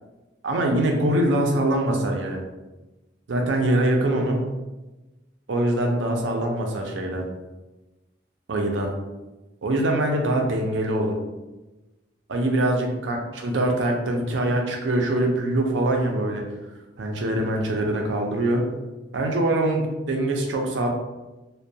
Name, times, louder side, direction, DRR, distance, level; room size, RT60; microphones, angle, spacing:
voice 1, 0.4-2.4 3.3-4.5 5.5-7.2 8.5-8.9 9.6-11.1 12.3-16.4 17.0-18.7 19.1-20.9, right 1 dB, 75° right, 2 dB, 0.5 m, -23 dB
2.2 x 2.2 x 2.7 m, 1.1 s
head